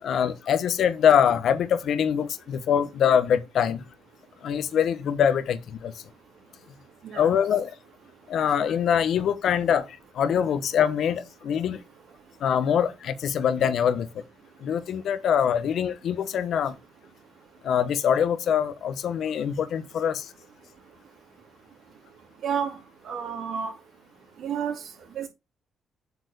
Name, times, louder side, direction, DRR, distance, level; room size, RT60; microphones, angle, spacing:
voice 1, 0.0-3.8 4.4-6.0 7.1-7.7 8.3-11.8 12.4-14.1 14.6-16.8 17.6-20.3, left 8 dB, 70° left, 1.1 m, -24 dB
voice 2, 22.4-22.8 23.0-23.7 24.4-24.9 25.2-25.3, right 7 dB, 70° right, 2.4 m, -30 dB
8.1 x 4.7 x 6.8 m
cardioid pair, 90°, 0 cm